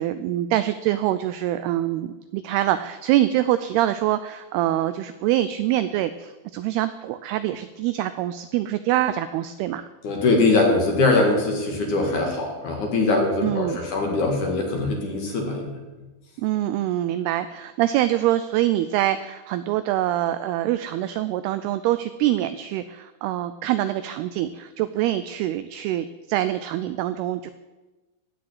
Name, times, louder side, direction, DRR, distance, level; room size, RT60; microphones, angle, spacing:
voice 1, 0.0-9.9 13.4-13.8 16.4-27.5, right 13 dB, 90° right, 12 dB, 2.2 m, -24 dB
voice 2, 10.0-15.8, left 3 dB, 50° left, 1 dB, 2.9 m, -22 dB
14.0 x 6.3 x 9.4 m, 1.2 s
omnidirectional pair, 5.1 m